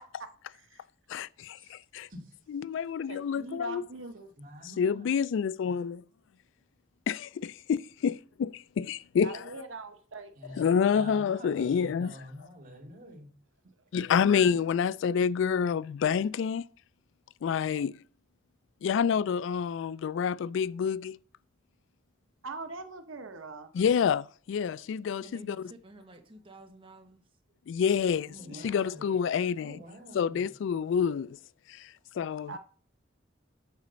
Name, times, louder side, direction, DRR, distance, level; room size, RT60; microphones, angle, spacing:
voice 1, 0.5-0.8 1.6-1.8 3.1-4.3 9.2-10.6 13.6-13.7 22.4-23.7 28.4-29.4 32.5-32.6, right 3 dB, 85° right, 1.0 m, -43 dB
voice 2, 1.1-2.1 2.5-3.8 4.8-6.0 7.1-9.4 10.6-12.1 13.9-16.6 17.4-17.9 18.8-21.2 23.7-25.6 27.7-29.8 30.1-31.4 31.7-32.5, left 7 dB, 70° left, 0.3 m, -28 dB
voice 3, 4.4-5.1 10.4-13.3 28.3-29.1 29.6-30.5, equal, 45° right, 2.7 m, -47 dB
voice 4, 25.2-27.2 28.4-28.9, right 1 dB, 30° right, 1.3 m, -52 dB
8.1 x 5.0 x 6.7 m
head